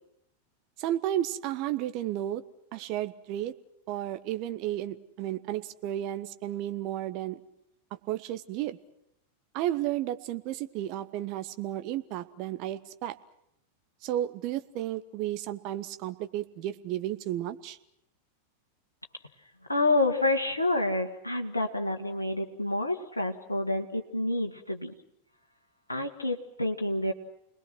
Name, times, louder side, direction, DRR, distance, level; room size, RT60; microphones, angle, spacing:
voice 1, 0.8-2.4 2.7-3.6 3.9-7.4 7.9-8.8 9.5-13.2 14.0-17.8, right 13 dB, 40° right, 11 dB, 1.3 m, -33 dB
voice 2, 19.7-25.0 25.9-27.1, left 2 dB, 80° left, 4 dB, 1.9 m, -28 dB
30.0 x 20.5 x 6.2 m, 0.79 s
figure-of-eight pair, 90°, 0 cm